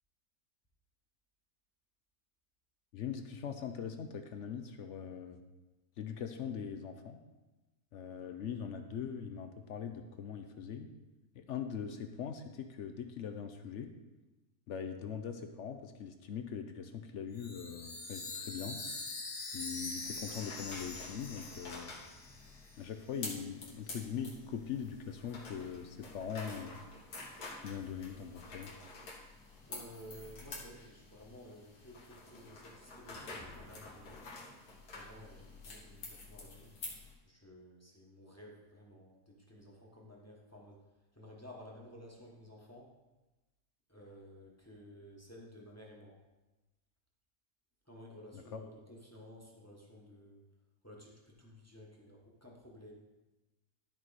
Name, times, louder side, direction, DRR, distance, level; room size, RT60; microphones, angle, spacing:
voice 1, 2.9-5.4 6.0-7.2 7.9-10.9 11.4-13.9 14.7-18.8 19.5-21.9 22.8-26.8 27.6-28.7 48.3-48.6, left 7 dB, 65° left, 6 dB, 0.8 m, -41 dB
Chime, 17.3-22.9, left 3 dB, 35° left, 0.9 m, -44 dB
sound 1, 20.0-37.1, left 2 dB, 85° left, 2.1 m, -49 dB
voice 2, 29.7-34.3 34.9-36.7 37.2-40.8 41.1-42.9 43.9-46.2 47.9-50.4 50.8-52.9, equal, 10° left, -2 dB, 1.1 m, -54 dB
12.5 x 4.6 x 4.2 m, 1.1 s
omnidirectional pair, 1.6 m